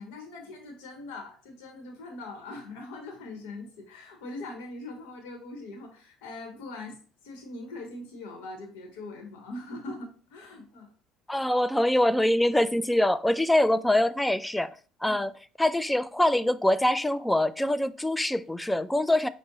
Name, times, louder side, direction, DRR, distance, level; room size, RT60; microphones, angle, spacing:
voice 1, 0.0-10.9 11.3-11.4 15.0-15.2, left 2 dB, 80° left, 0.9 m, -42 dB
voice 2, 11.3-14.7 15.0-15.3 15.6-19.3, left 1 dB, 10° left, 0.3 m, -24 dB
5.1 x 2.0 x 3.9 m
hypercardioid pair, 70°, 0 cm